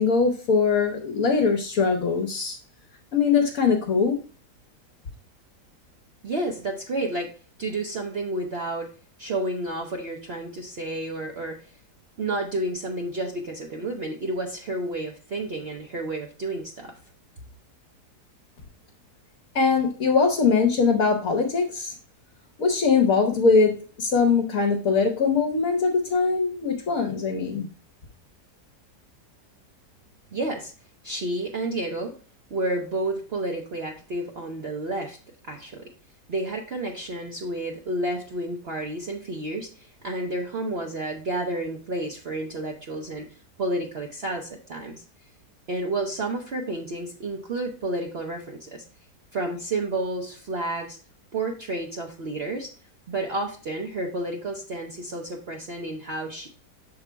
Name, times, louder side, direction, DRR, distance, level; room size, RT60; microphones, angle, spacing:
voice 1, 0.0-2.6 3.1-4.2 19.5-21.9 22.6-27.7, left 5 dB, 60° left, 3 dB, 1.2 m, -22 dB
voice 2, 6.2-7.3 7.6-8.9 9.2-11.7 12.2-17.0 30.3-30.7 31.0-32.1 32.5-35.2 35.4-35.8 36.3-45.0 45.7-48.8 49.3-51.0 51.3-52.7 53.1-56.5, right 2 dB, 50° right, 1 dB, 0.9 m, -30 dB
7.1 x 3.7 x 4.5 m, 0.38 s
omnidirectional pair, 1.7 m